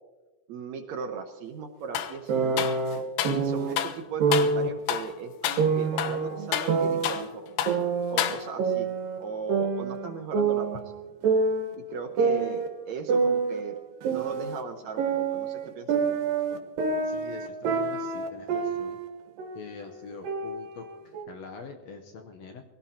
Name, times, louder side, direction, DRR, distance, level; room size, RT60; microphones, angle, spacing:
voice 1, 0.5-2.7 3.3-7.5 8.1-8.9 9.2-10.8 11.9-13.8 14.0-16.0, right 5 dB, 70° right, 5 dB, 1.9 m, -38 dB
sound 1, 1.9-2.2 2.6-3.4 3.8-4.0 4.3-4.6 4.9-5.1 5.4-5.7 6.0-7.3 7.6-7.8 8.2-8.7, left 11 dB, 85° left, 2.3 m, -30 dB
sound 2, 2.3-3.7 4.2-4.7 5.6-7.2 7.7-9.2 9.5-11.8 12.2-14.6 15.0-19.1 19.4-19.8 20.2-21.2, right 4 dB, 85° right, 2.9 m, -27 dB
voice 2, 17.0-19.0 19.5-22.6, left 4 dB, 65° left, 4 dB, 1.9 m, -44 dB
23.0 x 17.0 x 2.9 m, 1.3 s
omnidirectional pair, 3.9 m